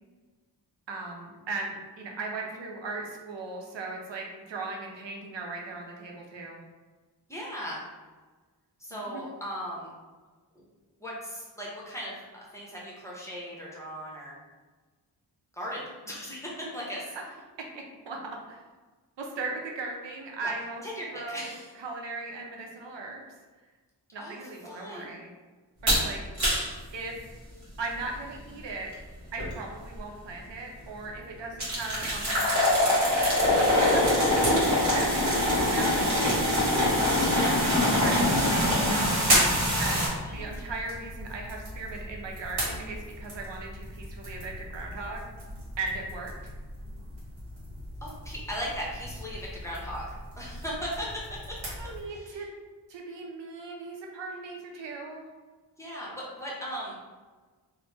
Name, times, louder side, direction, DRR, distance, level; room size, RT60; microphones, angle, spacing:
voice 1, 0.9-6.6 8.9-9.2 17.1-17.2 17.7-18.2 18.5-18.6 19.2-20.9 21.1-21.5 21.8-23.2 24.1-25.3 25.8-26.2 26.9-27.2 27.8-28.9 29.3-33.3 33.5-36.3 37.1-39.1 39.8-45.2 45.8-46.3 51.8-52.5 52.9-55.3, right 3 dB, 85° right, 0 dB, 0.6 m, -38 dB
voice 2, 7.3-7.9 8.8-9.9 10.5-10.6 11.0-12.2 12.5-14.4 15.5-17.1 20.4-20.5 20.8-21.7 24.2-25.2 39.9-40.0 40.3-40.6 48.0-51.2 51.5-51.6 52.1-52.5 55.8-57.0, equal, 5° left, -5 dB, 0.7 m, -38 dB
sound 1, 25.9-26.1 26.4-26.7 29.4-29.5 30.0-30.1 31.6-40.1, left 1 dB, 40° right, 1.4 m, -24 dB
sound 2, 33.3-52.0, equal, 60° right, 1.2 m, -36 dB
3.0 x 2.1 x 3.2 m, 1.3 s
wide cardioid pair, 100°, 43 cm